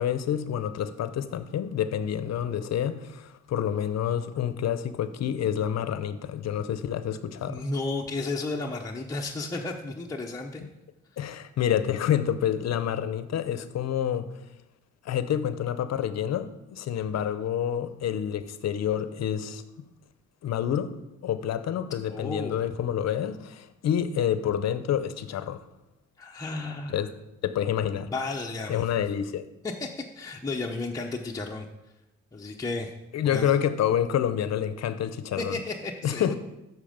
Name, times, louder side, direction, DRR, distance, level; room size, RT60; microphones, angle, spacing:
voice 1, 0.0-7.7 11.2-14.3 15.0-19.6 20.4-20.9 21.2-25.6 26.9-27.1 27.4-28.1 28.7-29.5 33.1-35.6 36.0-36.3, left 9 dB, 60° left, 0.7 m, -28 dB
voice 2, 7.5-10.6 22.1-22.6 26.2-27.0 28.1-28.8 29.6-31.6 32.3-32.9 33.2-33.5 35.4-36.3, left 3 dB, 10° left, 0.7 m, -33 dB
8.7 x 6.4 x 5.0 m
cardioid pair, 90°, 30 cm